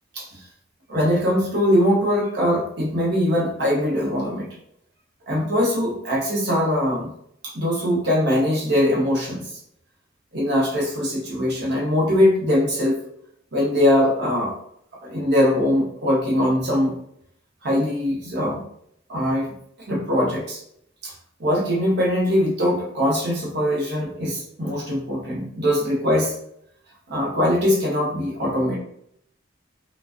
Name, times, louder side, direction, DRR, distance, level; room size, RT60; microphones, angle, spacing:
voice 1, 0.9-4.6 5.3-7.1 7.4-9.4 10.3-13.0 13.5-14.6 15.0-16.9 17.6-18.6 19.1-19.5 19.9-20.6 21.0-21.1 21.4-26.3 27.1-28.8, left 1 dB, 60° right, -3 dB, 0.8 m, -21 dB
2.3 x 2.2 x 2.4 m, 0.70 s
head